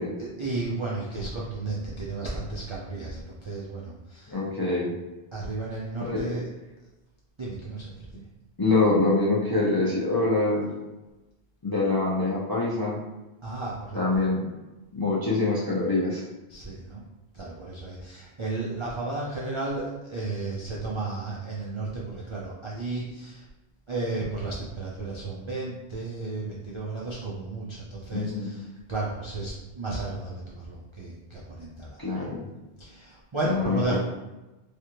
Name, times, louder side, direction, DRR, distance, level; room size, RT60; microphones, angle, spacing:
voice 1, 0.2-4.4 5.3-6.5 7.4-8.2 13.4-14.3 16.5-17.0 17.3-23.5 23.9-32.3 32.8-34.0, right 2 dB, 55° right, -6 dB, 0.3 m, -33 dB
voice 2, 4.3-4.9 6.0-6.3 8.6-10.7 11.6-13.0 13.9-14.4 14.9-16.2 28.1-28.5 32.0-32.4 33.5-34.0, left 3 dB, 30° left, -7 dB, 0.4 m, -25 dB
3.2 x 2.4 x 2.9 m, 1.1 s
omnidirectional pair, 1.2 m